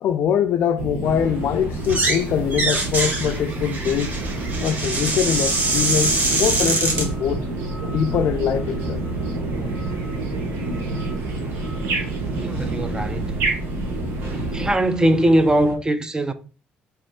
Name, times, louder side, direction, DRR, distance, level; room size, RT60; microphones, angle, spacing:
voice 1, 0.0-4.2 4.6-7.4 7.9-9.1 12.5-12.7, left 8 dB, 65° left, 0.3 m, -23 dB
sound 1, 0.8-14.7, right 2 dB, 85° right, 1.1 m, -28 dB
sound 2, 1.0-15.7, right 2 dB, 65° right, 1.7 m, -36 dB
sound 3, 1.8-2.2 2.5-7.1, right 2 dB, 50° right, 1.4 m, -23 dB
voice 2, 12.3-13.4 14.3-16.3, right 1 dB, 20° right, 0.5 m, -21 dB
3.5 x 3.1 x 4.2 m
supercardioid pair, 80°, 4 cm